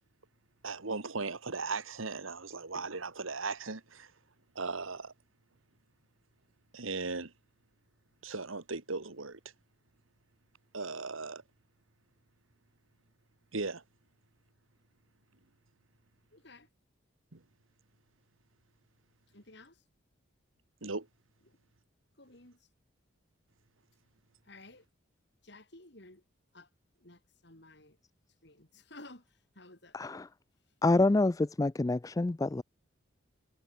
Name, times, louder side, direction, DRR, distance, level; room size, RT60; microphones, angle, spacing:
voice 1, 0.6-4.1 4.6-5.1 6.7-7.3 8.2-9.4 10.7-11.4 13.5-13.8 17.3-17.4 20.8-21.1, right 3 dB, 85° right, 1.9 m, -37 dB
voice 2, 16.3-16.7 19.3-19.8 21.5-21.6 22.2-22.7 24.4-24.9 25.4-26.2 26.5-26.7 27.0-28.0 28.4-30.3, left 2 dB, 55° left, 4.3 m, -54 dB
voice 3, 29.9-30.3 30.8-32.6, left 2 dB, 15° left, 0.3 m, -27 dB
head